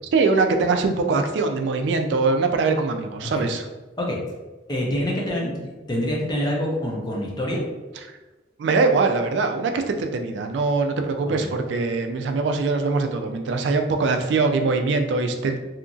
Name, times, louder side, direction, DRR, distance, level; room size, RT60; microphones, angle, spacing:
voice 1, 0.1-3.7 8.6-15.6, right 3 dB, 75° right, 6 dB, 0.3 m, -22 dB
voice 2, 4.7-7.6 11.3-11.5, equal, 25° left, -2 dB, 0.4 m, -26 dB
2.8 x 2.4 x 2.5 m, 1.2 s
head